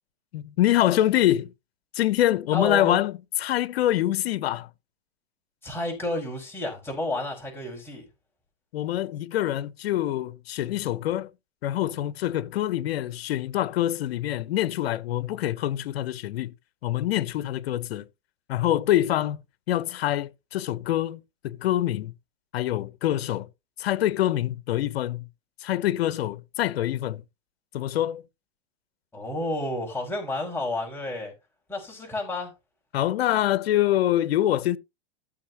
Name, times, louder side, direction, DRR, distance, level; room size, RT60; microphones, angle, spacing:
voice 1, 0.3-1.5 1.9-4.7 8.7-11.3 11.6-16.5 16.8-18.0 18.5-19.4 19.7-22.1 22.5-23.5 23.8-25.2 25.6-27.2 27.7-28.2 32.9-34.8, left 13 dB, 75° left, 1.0 m, -25 dB
voice 2, 2.5-3.0 5.6-8.0 29.1-31.3 31.7-32.5, left 1 dB, 5° left, 5.6 m, -30 dB
15.5 x 6.5 x 3.0 m
supercardioid pair, 145°, 31 cm